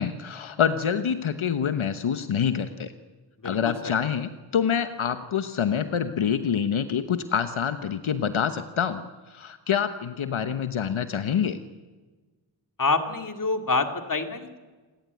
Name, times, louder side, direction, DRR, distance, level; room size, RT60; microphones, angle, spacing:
voice 1, 0.0-2.9 3.4-11.6, left 7 dB, 80° left, 10 dB, 1.2 m, -26 dB
voice 2, 3.4-3.9 12.8-14.6, left 3 dB, 40° left, 6 dB, 2.6 m, -27 dB
28.0 x 18.0 x 9.4 m, 1.3 s
wide cardioid pair, 105°, 47 cm